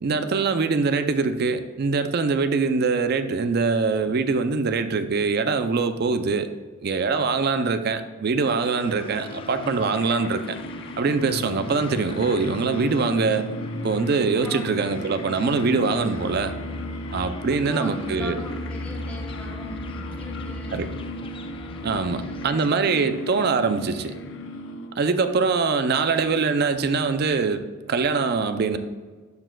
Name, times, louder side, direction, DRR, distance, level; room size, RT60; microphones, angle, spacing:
voice 1, 0.0-6.5 6.8-10.6 11.0-13.5 13.8-16.5 17.1-18.4 20.7-20.9 21.8-24.1 25.0-28.8, right 4 dB, 55° right, 10 dB, 0.5 m, -23 dB
sound 1, 8.5-25.1, left 1 dB, 70° left, 0.6 m, -37 dB
sound 2, 8.6-22.5, left 2 dB, 25° left, 0.3 m, -38 dB
voice 2, 14.4-15.3 17.3-20.9 21.9-23.1, left 1 dB, 5° left, 0 dB, 1.1 m, -40 dB
12.0 x 4.5 x 2.3 m, 1.4 s
head